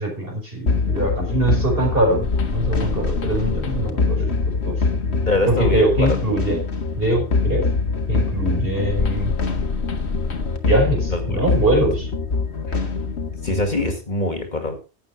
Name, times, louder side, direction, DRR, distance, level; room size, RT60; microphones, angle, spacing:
voice 1, 0.0-4.3 4.6-4.8 5.5-6.7 7.0-7.7 8.1-9.4 10.6-12.1, right 1 dB, 55° right, 0 dB, 5.4 m, -22 dB
sound 1, 0.7-14.0, left 4 dB, 70° left, 1.8 m, -23 dB
voice 2, 5.3-6.2 11.1-11.8 12.7-12.8 13.4-14.7, left 2 dB, 40° left, 5 dB, 2.3 m, -24 dB
12.0 x 8.7 x 4.6 m, 0.32 s
omnidirectional pair, 1.1 m